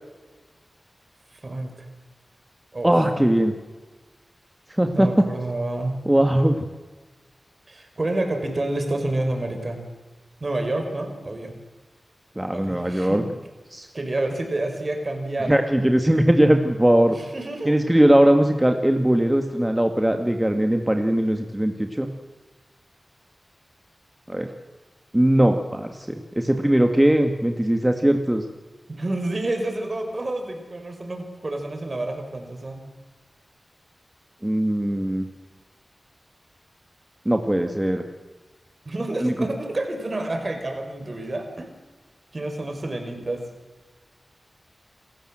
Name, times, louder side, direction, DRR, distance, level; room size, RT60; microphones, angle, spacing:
voice 1, 1.4-1.8 2.7-2.9 4.9-6.0 7.7-9.8 10.4-11.5 12.5-13.3 13.9-15.6 17.1-17.8 28.9-32.8 38.9-41.7 42.3-43.4, right 2 dB, 50° right, 5 dB, 5.4 m, -29 dB
voice 2, 2.8-3.5 4.7-5.1 6.1-6.6 12.4-13.2 13.7-13.9 15.5-17.2 17.7-22.1 24.3-24.5 25.1-26.0 26.4-28.4 34.4-35.2 37.3-38.0 39.2-39.3, right 1 dB, 15° right, 5 dB, 2.2 m, -20 dB
28.0 x 14.5 x 7.7 m, 1.3 s
cardioid pair, 45°, 0 cm